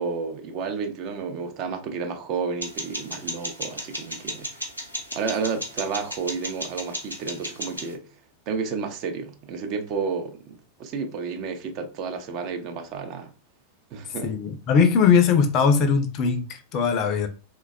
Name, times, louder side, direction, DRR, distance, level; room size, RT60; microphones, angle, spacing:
voice 1, 0.0-4.7 5.1-8.0 8.5-13.3 13.9-14.4, right 5 dB, 40° right, 0.5 m, -31 dB
sound 1, 2.6-7.9, equal, 90° left, 0.7 m, -35 dB
voice 2, 14.2-17.3, left 6 dB, 40° left, 0.5 m, -20 dB
3.3 x 2.2 x 2.3 m
figure-of-eight pair, 90°, 0 cm